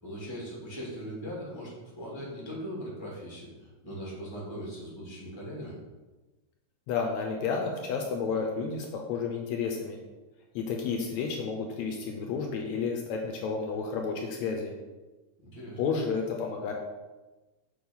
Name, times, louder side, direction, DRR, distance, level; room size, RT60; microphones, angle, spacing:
voice 1, 0.0-5.8 15.4-15.8, equal, 10° left, -5 dB, 2.0 m, -40 dB
voice 2, 6.9-10.0 10.6-14.7 15.8-16.7, left 5 dB, 75° left, 2 dB, 2.0 m, -31 dB
6.3 x 4.7 x 5.4 m, 1.2 s
omnidirectional pair, 3.3 m